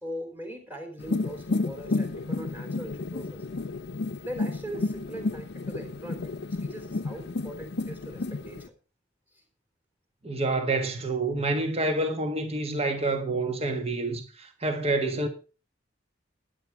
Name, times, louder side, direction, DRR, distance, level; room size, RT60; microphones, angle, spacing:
voice 1, 0.0-3.5 4.2-8.7 9.3-9.4, equal, 10° right, 3.5 m, -40 dB
sound 1, 1.0-8.7, left 3 dB, 60° left, 0.7 m, -32 dB
voice 2, 10.2-15.3, right 2 dB, 30° right, 1.5 m, -28 dB
12.5 x 10.0 x 4.7 m
head